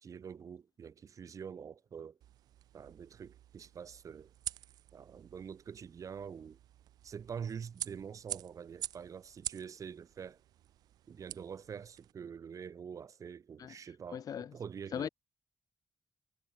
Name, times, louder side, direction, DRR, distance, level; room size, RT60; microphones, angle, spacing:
voice 1, 0.0-2.2 2.7-4.3 4.9-6.6 7.0-10.4 11.1-14.2 14.5-15.1, right 7 dB, 55° right, 2.2 m, -45 dB
sound 1, 2.2-12.1, right 12 dB, 85° right, 2.0 m, -47 dB
voice 2, 14.1-14.5 14.9-15.1, left 8 dB, 65° left, 4.5 m, -38 dB
cardioid pair, 70°, 7 cm